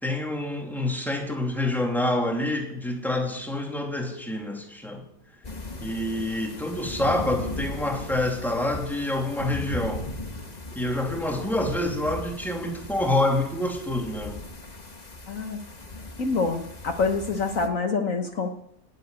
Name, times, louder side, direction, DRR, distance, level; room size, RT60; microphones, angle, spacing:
voice 1, 0.0-5.0 5.8-10.1 10.7-14.4, left 1 dB, ahead, 2.6 m, -27 dB
sound 1, 5.4-17.7, left 2 dB, 30° left, 1.5 m, -38 dB
voice 2, 15.3-15.6 16.2-18.5, left 4 dB, 60° left, 1.6 m, -26 dB
19.0 x 7.8 x 9.3 m
omnidirectional pair, 1.6 m